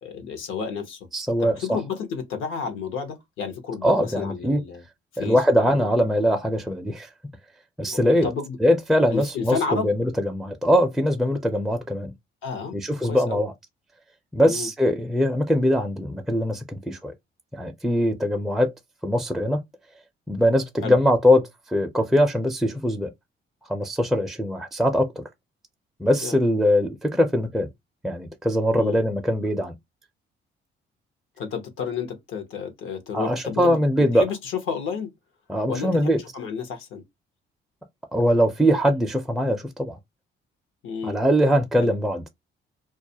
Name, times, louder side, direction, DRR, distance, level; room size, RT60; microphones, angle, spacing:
voice 1, 0.0-1.1 1.4-4.8 5.1-5.9 7.9-8.6 9.1-9.9 12.4-12.8 13.0-13.4 14.4-14.7 20.8-21.0 26.2-26.4 28.7-29.0 31.4-35.1 35.7-37.0 40.8-41.3 41.8-41.9, left 6 dB, 85° left, 0.8 m, -31 dB
voice 2, 1.1-1.8 3.8-4.6 5.2-7.1 7.8-8.3 8.6-12.1 12.7-13.5 14.3-17.1 17.5-18.7 19.0-19.6 20.3-23.1 23.7-25.2 26.0-27.7 28.0-29.8 33.1-34.2 35.5-36.2 38.1-40.0 41.0-42.3, equal, ahead, 0.4 m, -22 dB
2.3 x 2.1 x 2.7 m
cardioid pair, 90°, 20 cm